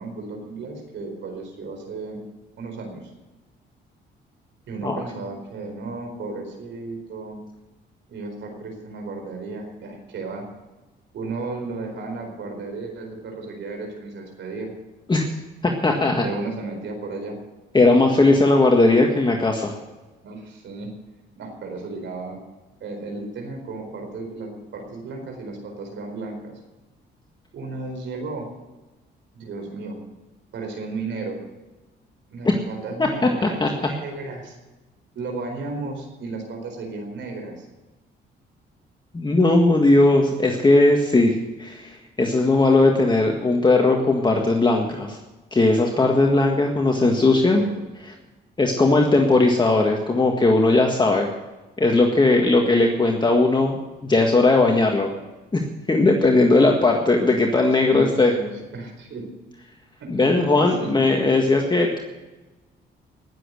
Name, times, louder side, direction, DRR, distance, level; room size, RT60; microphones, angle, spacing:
voice 1, 0.0-2.2 2.6-3.1 4.7-7.4 8.1-10.5 11.1-14.7 16.2-17.4 20.2-20.9 21.4-22.4 22.8-26.6 27.5-28.5 29.3-30.0 30.5-31.4 32.3-34.6 35.1-37.6 47.5-47.8 57.8-59.3 60.0-60.9 61.5-61.6, right 3 dB, 70° right, 3 dB, 4.4 m, -34 dB
voice 2, 15.6-16.2 17.7-19.7 32.4-32.5 33.0-33.1 33.4-33.7 39.1-45.2 45.5-47.6 48.6-51.3 51.8-55.1 55.5-58.3 60.1-62.0, left 2 dB, 20° left, 1 dB, 1.7 m, -18 dB
19.0 x 7.8 x 6.5 m, 1.2 s
cardioid pair, 90°, 20 cm